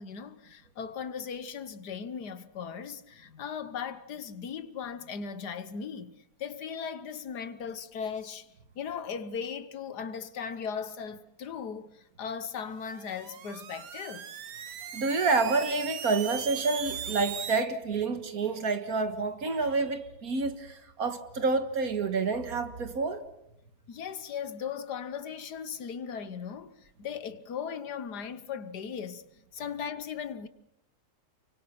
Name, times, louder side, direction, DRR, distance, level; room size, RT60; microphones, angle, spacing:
voice 1, 0.0-8.5 8.8-14.3 23.9-29.2 29.5-30.5, left 7 dB, 75° left, 1.8 m, -38 dB
sound 1, 12.8-17.7, right 9 dB, 85° right, 1.7 m, -39 dB
voice 2, 14.9-23.2, right 4 dB, 60° right, 2.1 m, -28 dB
29.0 x 24.0 x 6.0 m
omnidirectional pair, 1.7 m